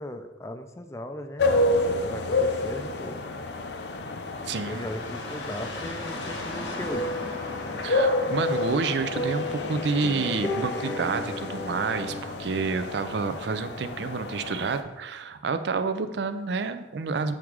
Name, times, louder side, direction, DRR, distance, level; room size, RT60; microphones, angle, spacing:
voice 1, 0.0-3.2 4.7-7.1, left 1 dB, 15° left, 7 dB, 0.4 m, -38 dB
sound 1, 1.4-14.8, left 2 dB, 65° left, 0.5 m, -30 dB
sound 2, 4.5-10.7, left 1 dB, 85° left, 1.2 m, -39 dB
voice 2, 4.5-4.9 7.8-17.3, right 4 dB, 70° right, 10 dB, 0.4 m, -29 dB
sound 3, 6.9-12.2, left 1 dB, ahead, 0.9 m, -35 dB
7.7 x 3.5 x 4.7 m, 1.1 s
head